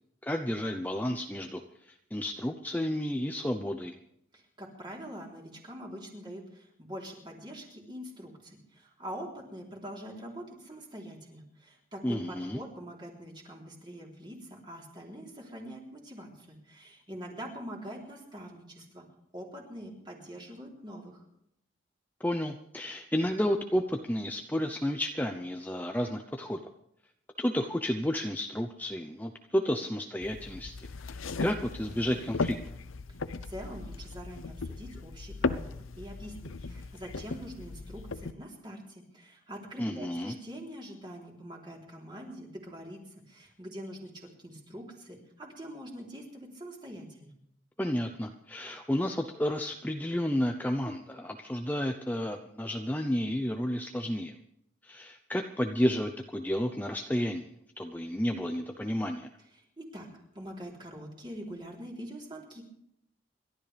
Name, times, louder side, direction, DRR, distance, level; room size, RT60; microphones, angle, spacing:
voice 1, 0.2-1.6 1.9-4.0 12.0-12.6 22.2-26.7 27.4-30.7 31.1-32.6 39.8-40.3 47.8-54.3 54.8-57.5 57.8-59.3, equal, 10° left, 4 dB, 0.7 m, -31 dB
voice 2, 4.3-19.1 19.3-21.2 33.4-43.0 43.3-47.3 59.6-60.1 60.3-62.6, equal, 25° right, -1 dB, 3.6 m, -44 dB
sound 1, 30.2-38.3, left 3 dB, 90° left, 0.8 m, -37 dB
28.5 x 12.5 x 3.4 m, 0.77 s
head